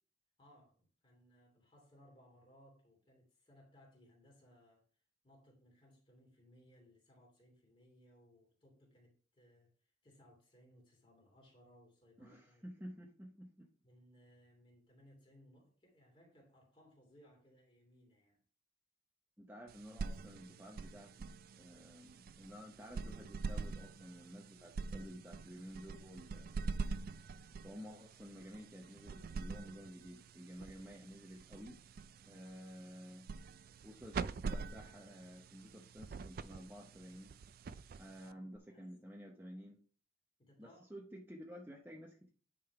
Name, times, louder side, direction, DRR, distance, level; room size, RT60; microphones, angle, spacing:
voice 1, 0.4-4.8 5.2-12.7 13.8-18.4 38.2-38.9 40.4-40.8, equal, 25° left, 2.9 m, -65 dB
voice 2, 12.2-13.7 19.4-26.5 27.6-31.8 32.3-33.3 33.8-37.3 37.9-39.8 40.6-42.3, equal, 10° right, 0.8 m, -52 dB
sound 1, 19.7-38.6, right 4 dB, 50° right, 0.3 m, -45 dB
9.8 x 3.8 x 4.7 m
head